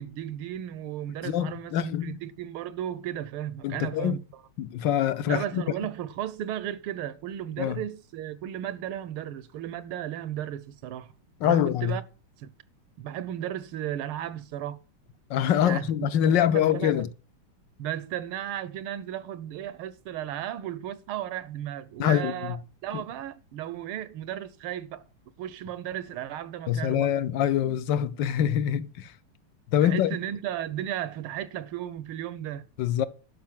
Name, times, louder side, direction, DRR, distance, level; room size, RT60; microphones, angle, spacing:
voice 1, 0.0-4.4 5.3-11.1 11.4-12.0 12.4-12.5 13.0-14.8 15.6-17.1 17.8-22.6 22.8-25.0 25.4-27.1 27.7-27.8 29.8-32.6, right 11 dB, 80° right, 1.5 m, -35 dB
voice 2, 1.2-2.2 3.6-4.2 4.6-5.6 7.6-7.8 11.4-12.0 15.3-17.1 22.0-22.6 26.7-29.1 29.7-30.2 32.8-33.1, left 10 dB, 70° left, 1.2 m, -25 dB
12.0 x 5.3 x 7.4 m
omnidirectional pair, 2.4 m